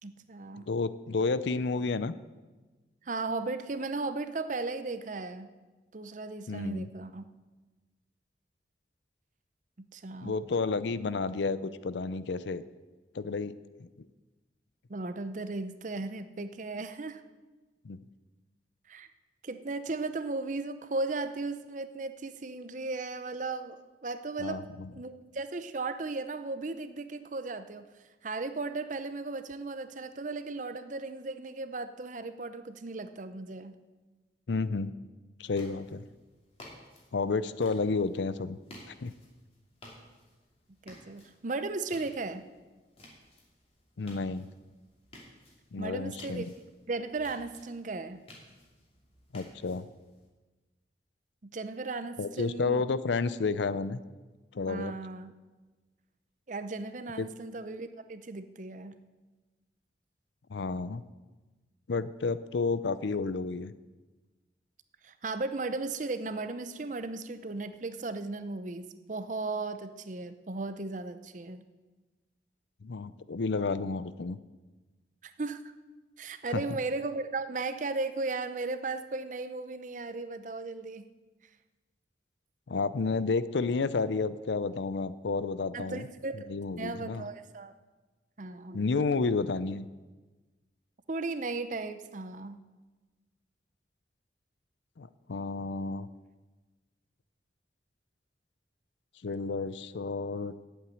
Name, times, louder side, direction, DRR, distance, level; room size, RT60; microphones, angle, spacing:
voice 1, 0.0-0.7 3.0-5.5 5.9-7.2 9.8-10.4 14.9-17.2 18.9-19.1 19.4-27.9 28.2-33.8 40.9-42.4 45.8-46.5 46.9-48.2 51.4-52.8 54.7-55.3 56.5-59.0 65.0-71.6 75.2-75.7 76.2-81.0 85.7-86.5 86.8-87.7 88.4-88.8 91.1-92.6, right 3 dB, 45° right, 11 dB, 0.7 m, -36 dB
voice 2, 0.6-2.1 6.5-6.9 10.2-12.6 13.1-13.5 13.8-13.9 17.8-18.0 24.4-24.9 34.5-34.9 35.4-36.0 37.1-38.6 38.9-39.1 44.0-44.5 45.7-46.5 49.3-49.9 52.2-54.0 54.5-54.9 57.2-57.3 60.5-61.0 61.9-63.7 72.8-74.4 76.5-76.6 82.7-86.1 86.3-87.2 88.7-89.9 95.0-96.1 99.2-100.5, left 4 dB, 80° left, 15 dB, 0.5 m, -31 dB
sound 1, 35.4-50.3, left 1 dB, 35° left, 2.6 m, -55 dB
8.7 x 8.1 x 9.2 m, 1.2 s
head